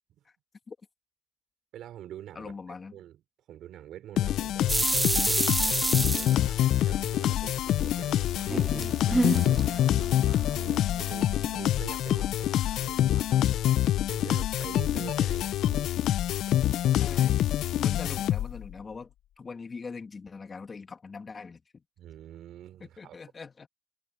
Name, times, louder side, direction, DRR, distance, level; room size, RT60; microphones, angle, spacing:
voice 1, 1.7-2.6 2.9-3.2 3.5-15.9 16.5-16.6 22.0-23.2, right 11 dB, 80° right, 3.9 m, -45 dB
voice 2, 2.4-2.9 15.0-15.1 17.0-17.5 17.8-21.8 22.8-23.7, left 4 dB, 35° left, 1.8 m, -41 dB
sound 1, 4.2-18.7, left 12 dB, 80° left, 0.4 m, -26 dB
sound 2, 4.7-7.1 7.5-9.8, right 2 dB, 15° right, 0.5 m, -27 dB
Wind instrument woodwind instrument, 8.4-11.9, right 5 dB, 45° right, 2.1 m, -46 dB
cardioid pair, 90°, 0 cm